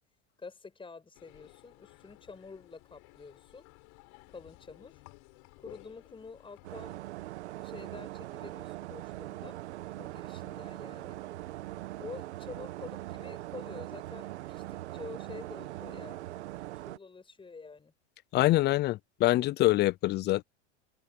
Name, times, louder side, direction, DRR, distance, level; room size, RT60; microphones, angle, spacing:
voice 1, 0.4-3.7 4.3-5.0 5.6-7.0 7.6-9.6 9.9-11.2 12.0-16.6 16.9-17.9, left 4 dB, 15° left, 7.8 m, -48 dB
sound 1, 1.1-7.0, left 29 dB, 50° left, 5.8 m, -56 dB
sound 2, 6.6-17.0, right 16 dB, 70° right, 1.2 m, -41 dB
voice 2, 18.3-20.4, left 17 dB, 30° left, 0.6 m, -25 dB
hypercardioid pair, 110°, 35 cm